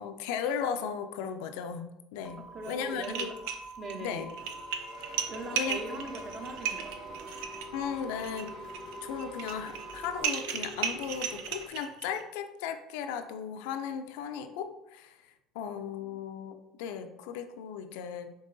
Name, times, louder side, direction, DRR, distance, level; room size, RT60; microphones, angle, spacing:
voice 1, 0.0-2.4 2.7-3.3 4.0-4.3 5.1-5.2 5.5-6.0 7.7-8.5 9.0-15.2 15.6-18.4, left 7 dB, 80° left, 7 dB, 0.4 m, -36 dB
sound 1, 2.2-10.2, equal, ahead, 0.4 m, -46 dB
voice 2, 2.5-3.4 3.8-4.3 5.3-7.3 15.6-15.7 16.0-16.2, right 2 dB, 40° right, 4 dB, 0.8 m, -41 dB
sound 2, 2.6-2.7 3.0-3.9 4.3-12.2, right 8 dB, 80° right, 0.4 m, -35 dB
sound 3, 4.4-11.7, right 1 dB, 65° right, 1.5 m, -47 dB
5.4 x 2.9 x 2.6 m, 0.89 s
supercardioid pair, 95°, 0 cm